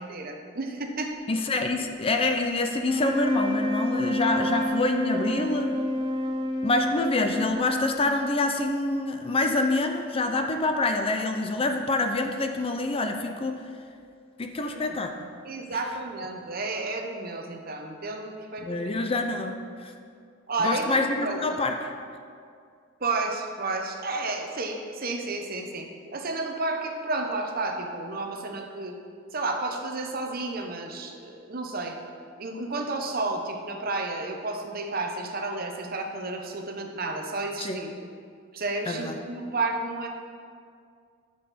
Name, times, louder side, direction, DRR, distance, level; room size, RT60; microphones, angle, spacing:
voice 1, 0.1-1.1 14.7-15.0 15.4-18.9 20.5-21.6 23.0-29.0 29.3-32.0 32.4-37.9 38.5-40.1, right 3 dB, 45° right, 3 dB, 0.9 m, -31 dB
voice 2, 1.3-5.7 6.6-13.6 14.4-15.1 18.6-19.9 20.6-21.9 37.6-37.8 38.9-39.1, left 2 dB, 30° left, 5 dB, 0.5 m, -26 dB
sound 1, 2.8-8.2, left 1 dB, 20° right, 0.6 m, -29 dB
11.5 x 6.4 x 4.2 m, 2.2 s
head